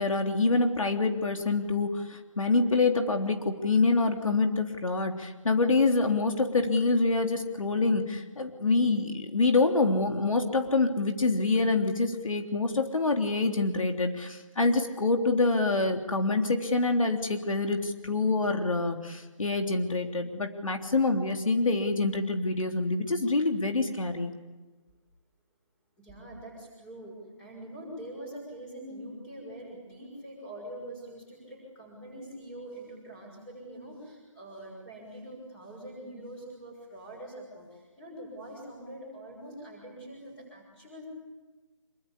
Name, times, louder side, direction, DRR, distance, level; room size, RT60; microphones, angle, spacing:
voice 1, 0.0-24.3, left 3 dB, 80° left, 4 dB, 3.4 m, -26 dB
voice 2, 26.0-41.0, right 1 dB, 5° left, -1 dB, 6.3 m, -44 dB
26.5 x 25.0 x 8.5 m, 1.2 s
hypercardioid pair, 175°, 17 cm